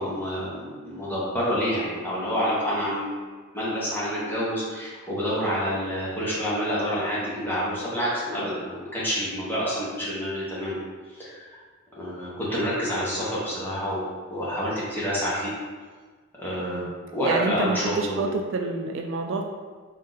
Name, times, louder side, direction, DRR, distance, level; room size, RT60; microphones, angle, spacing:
voice 1, 0.0-3.2 3.5-10.8 11.2-11.4 12.0-15.5 16.4-16.8 17.1-18.3, equal, 10° left, -8 dB, 1.1 m, -28 dB
voice 2, 17.2-19.4, right 3 dB, 55° right, 2 dB, 0.3 m, -28 dB
3.6 x 2.7 x 3.9 m, 1.5 s
head